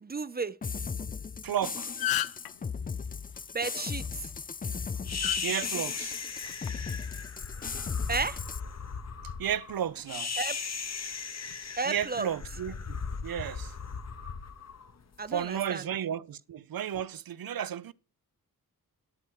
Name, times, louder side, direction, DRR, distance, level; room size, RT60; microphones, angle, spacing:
voice 1, 0.0-0.6 3.5-4.3 8.1-8.4 10.4-10.6 11.8-12.3 15.2-15.8, right 4 dB, 25° right, 0.5 m, -33 dB
sound 1, 0.6-8.6, left 5 dB, 25° left, 0.4 m, -37 dB
voice 2, 1.4-1.9 5.4-6.2 9.4-10.3 11.9-13.0 13.2-13.7 15.3-17.9, right 9 dB, 70° right, 0.6 m, -33 dB
sound 2, 1.5-1.6 1.8-2.5 4.1-4.4 5.2-5.4 6.4-6.7, left 12 dB, 75° left, 0.5 m, -30 dB
sound 3, 5.1-15.4, left 5 dB, 45° left, 1.1 m, -37 dB
9.1 x 8.8 x 4.7 m
wide cardioid pair, 95°, 36 cm